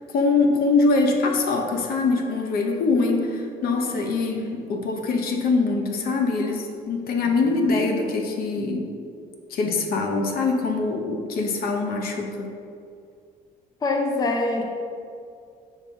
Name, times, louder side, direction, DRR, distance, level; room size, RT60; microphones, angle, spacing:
voice 1, 0.1-8.9 9.5-12.5, left 3 dB, 65° left, 3 dB, 0.8 m, -23 dB
voice 2, 13.8-14.6, left 2 dB, 20° left, 2 dB, 0.6 m, -23 dB
5.5 x 5.5 x 3.6 m, 2.4 s
cardioid pair, 110°, 17 cm